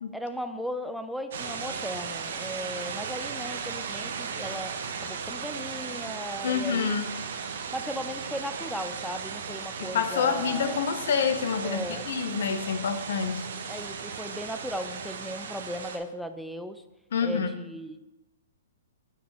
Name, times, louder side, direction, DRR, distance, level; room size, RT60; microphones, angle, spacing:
voice 1, 0.1-7.1 7.7-10.8 11.6-12.1 13.7-16.8 17.2-18.0, equal, ahead, 9 dB, 0.3 m, -37 dB
sound 1, 1.3-16.0, right 6 dB, 60° right, 0.7 m, -36 dB
voice 2, 6.4-7.1 9.8-13.5 17.1-17.6, left 6 dB, 65° left, 8 dB, 0.7 m, -27 dB
7.2 x 5.6 x 2.9 m, 1.0 s
hypercardioid pair, 140°, 0 cm